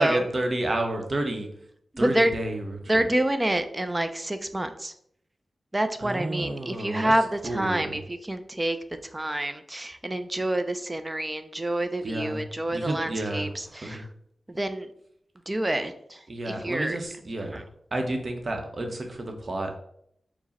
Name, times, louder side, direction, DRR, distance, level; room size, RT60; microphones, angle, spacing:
voice 1, 0.0-1.5 2.0-3.0 6.0-7.1 7.4-8.0 12.0-12.4 12.7-13.5 13.8-14.0 16.3-17.6 17.9-19.7, right 1 dB, 45° right, 3 dB, 0.7 m, -30 dB
voice 2, 1.9-2.3 2.9-4.9 5.7-8.8 9.1-14.1 14.5-14.9 15.5-17.0 17.4-17.6, right 1 dB, 20° right, 9 dB, 0.4 m, -27 dB
4.7 x 2.1 x 4.0 m, 0.70 s
wide cardioid pair, 85°, 0 cm